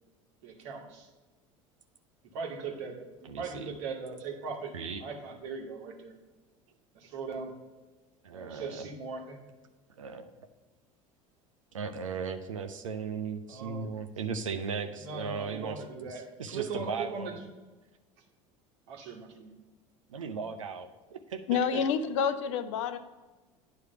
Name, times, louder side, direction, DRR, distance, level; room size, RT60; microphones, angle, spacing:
voice 1, 0.4-1.1 2.3-4.7 5.0-6.1 6.9-7.6 8.3-9.4 13.5-14.0 15.0-17.3 18.9-19.6, right 4 dB, 65° right, 1 dB, 1.5 m, -39 dB
voice 2, 3.2-3.7 4.7-5.0 8.2-8.9 10.0-10.3 11.7-17.4 20.1-21.8, right 5 dB, 90° right, 8 dB, 0.6 m, -37 dB
voice 3, 21.5-23.0, left 7 dB, 70° left, 11 dB, 0.6 m, -28 dB
9.4 x 3.2 x 6.8 m, 1.2 s
hypercardioid pair, 70°, 16 cm